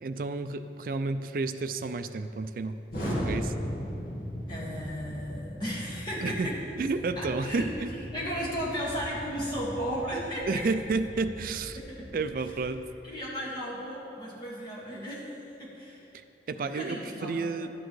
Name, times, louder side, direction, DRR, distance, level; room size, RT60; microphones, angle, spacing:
voice 1, 0.0-2.8 3.3-3.5 6.2-6.5 6.8-7.9 10.5-11.8 12.1-12.8 16.5-17.7, right 3 dB, 50° right, 10 dB, 0.4 m, -31 dB
Explosion, 2.9-12.8, equal, 50° left, 1.7 m, -38 dB
voice 2, 4.5-6.6 7.2-7.7 8.1-10.7 11.7-12.3 13.0-16.1 16.6-17.6, equal, 25° left, -6 dB, 1.8 m, -35 dB
11.5 x 8.6 x 3.2 m, 2.8 s
head